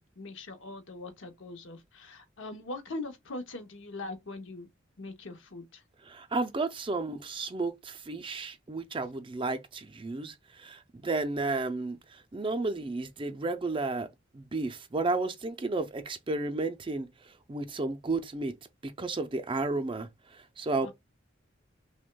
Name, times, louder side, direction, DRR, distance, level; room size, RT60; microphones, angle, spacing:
voice 1, 0.0-4.7 5.0-5.8 20.8-20.9, left 2 dB, 70° left, 0.8 m, -41 dB
voice 2, 6.1-12.0 12.3-14.1 14.3-17.1 17.5-18.5 18.8-20.1 20.6-20.9, right 3 dB, 25° right, 0.4 m, -32 dB
6.0 x 2.2 x 2.2 m
head